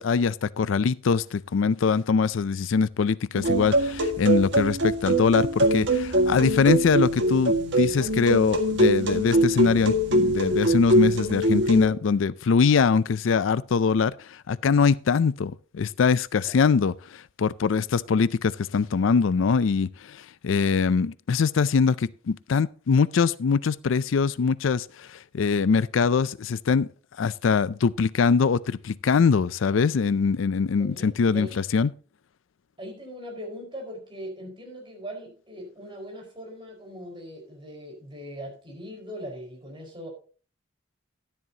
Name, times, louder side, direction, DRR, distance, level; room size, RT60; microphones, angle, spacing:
voice 1, 0.0-26.9 27.2-31.9, left 5 dB, 80° left, 0.4 m, -23 dB
sound 1, 3.3-11.9, right 1 dB, 65° right, 1.8 m, -23 dB
voice 2, 30.8-31.6 32.8-40.1, equal, 25° right, 4.7 m, -40 dB
12.5 x 11.0 x 2.8 m
head